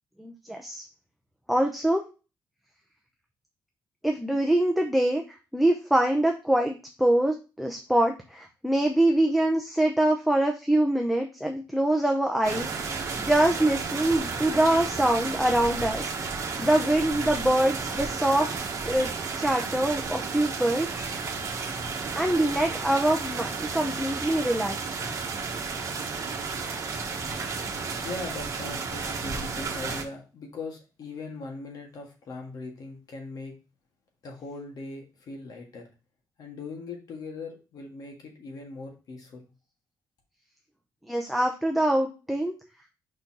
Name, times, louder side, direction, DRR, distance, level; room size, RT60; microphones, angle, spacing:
voice 1, 0.2-0.8 1.5-2.0 4.0-5.2 5.5-18.5 18.9-21.0 22.2-24.9 41.1-42.5, right 1 dB, ahead, 2 dB, 0.7 m, -24 dB
sound 1, 12.4-30.0, right 4 dB, 45° right, 1.3 m, -32 dB
voice 2, 28.0-33.6 34.2-35.9 36.4-39.5, left 3 dB, 60° left, 2 dB, 1.7 m, -40 dB
5.4 x 4.3 x 4.5 m, 0.31 s
cardioid pair, 130°, 7 cm